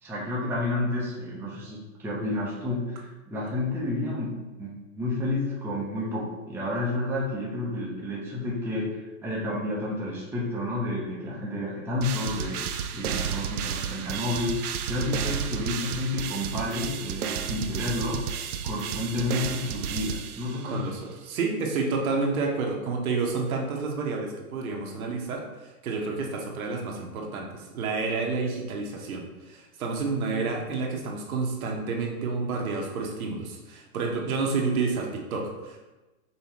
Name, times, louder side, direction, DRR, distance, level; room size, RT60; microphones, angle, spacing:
voice 1, 0.0-18.2 18.6-20.9, left 2 dB, 5° right, -6 dB, 0.7 m, -30 dB
sound 1, 12.0-20.8, right 8 dB, 90° right, 0.6 m, -32 dB
voice 2, 20.6-35.8, right 4 dB, 75° right, 0 dB, 1.2 m, -30 dB
5.6 x 3.1 x 3.0 m, 1.1 s
hypercardioid pair, 130°, 43 cm